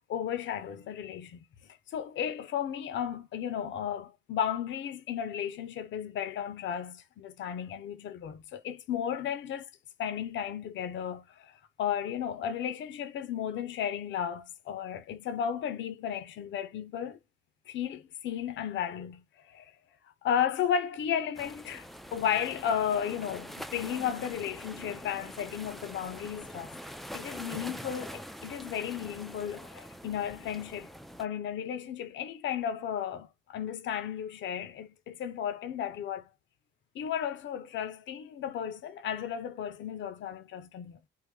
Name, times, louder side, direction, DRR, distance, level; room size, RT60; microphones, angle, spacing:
voice 1, 0.0-1.4 1.9-9.7 10.0-17.2 17.7-19.2 19.5-19.7 20.2-26.8 27.1-30.9 31.2-36.3 36.9-41.0, left 9 dB, 70° left, 0.7 m, -34 dB
sound 1, 21.3-31.3, equal, ahead, 0.4 m, -44 dB
3.7 x 2.1 x 3.2 m
cardioid pair, 90°, 20 cm